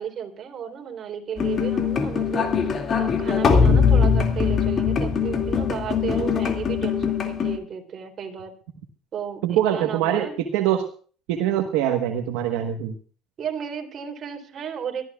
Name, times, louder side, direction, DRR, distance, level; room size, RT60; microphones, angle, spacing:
voice 1, 0.0-8.5 9.1-10.4 13.4-15.0, right 8 dB, 45° right, 4 dB, 3.5 m, -33 dB
sound 1, 1.4-7.6, left 6 dB, 45° left, 2.4 m, -21 dB
voice 2, 9.4-10.9 11.3-12.9, right 10 dB, 85° right, 4 dB, 1.3 m, -24 dB
23.0 x 13.5 x 2.4 m, 0.41 s
supercardioid pair, 90°, 0 cm